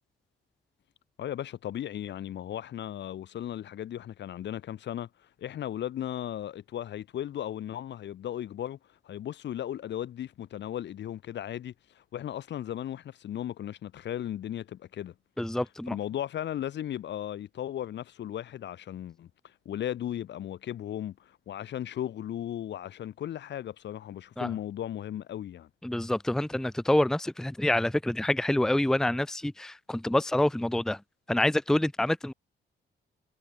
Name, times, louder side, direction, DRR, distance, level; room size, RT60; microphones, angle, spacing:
voice 1, 1.2-5.1 5.4-8.8 9.0-15.1 15.9-25.7, left 11 dB, 75° left, 3.9 m, -36 dB
voice 2, 15.4-15.9 24.4-24.5 25.8-31.0 31.3-32.3, left 1 dB, 5° left, 0.8 m, -27 dB
wide cardioid pair, 180°, 19 cm